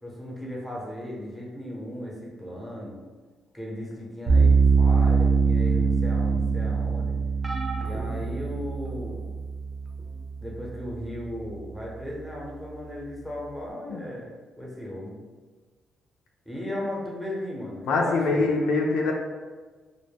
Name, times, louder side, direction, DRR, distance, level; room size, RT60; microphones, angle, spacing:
voice 1, 0.0-3.0 3.5-7.1 7.8-9.3 10.4-15.2 16.5-18.5, left 1 dB, ahead, -4 dB, 0.7 m, -36 dB
sound 1, 4.3-11.4, right 5 dB, 50° right, 0.7 m, -23 dB
sound 2, 7.4-9.2 10.0-10.2 11.5-11.6, right 2 dB, 20° right, 0.3 m, -39 dB
voice 2, 17.9-19.1, left 3 dB, 85° left, 0 dB, 0.3 m, -23 dB
2.1 x 2.0 x 3.3 m, 1.4 s
cardioid pair, 90°, 0 cm